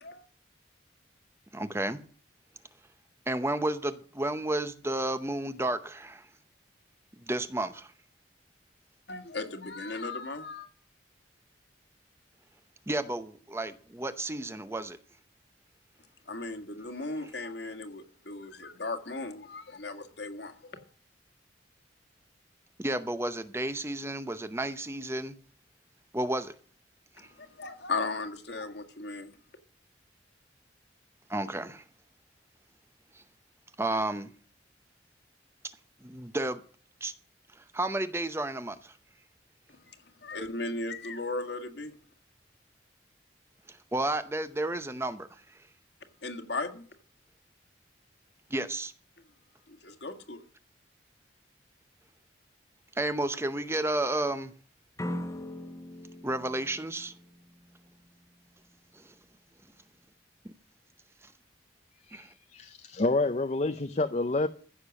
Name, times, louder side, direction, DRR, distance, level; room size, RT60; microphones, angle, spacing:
voice 1, 1.5-2.0 3.3-6.3 7.3-7.9 12.9-15.0 17.2-17.3 22.8-25.3 26.1-26.5 27.2-27.3 31.3-31.8 33.1-33.2 33.8-34.3 36.0-36.6 37.0-37.1 37.6-39.0 43.7-45.6 48.5-48.9 52.9-54.5 56.2-57.1 58.9-59.1 60.4-60.5 61.2-61.3 62.1-62.3, right 1 dB, 15° right, 0.7 m, -32 dB
voice 2, 9.1-10.7 16.3-20.8 27.6-29.3 40.2-41.9 46.2-46.8 49.8-50.4, left 3 dB, 65° left, 1.8 m, -36 dB
sound 1, 55.0-57.9, left 1 dB, 15° left, 1.0 m, -40 dB
voice 3, 62.1-64.5, left 2 dB, 40° left, 0.6 m, -29 dB
15.0 x 6.7 x 6.4 m
head